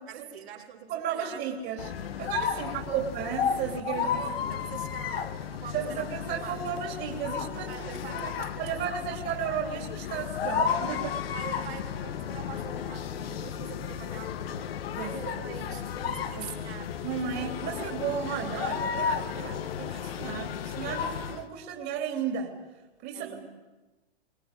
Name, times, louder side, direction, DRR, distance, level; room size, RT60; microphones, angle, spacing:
voice 1, 0.1-1.6 2.5-3.2 3.9-6.6 7.7-9.4 11.3-16.9 17.2-18.0 23.1-23.5, right 8 dB, 75° right, -2 dB, 5.5 m, -44 dB
voice 2, 0.9-1.9 2.2-4.1 4.4-4.5 5.7-8.3 8.6-11.2 14.9-15.4 16.4-22.5 23.0-23.5, right 8 dB, 30° right, 1 dB, 3.2 m, -34 dB
sound 1, 1.8-21.5, left 7 dB, 65° left, 2.0 m, -33 dB
24.0 x 20.0 x 9.8 m, 1.2 s
hypercardioid pair, 140°, 32 cm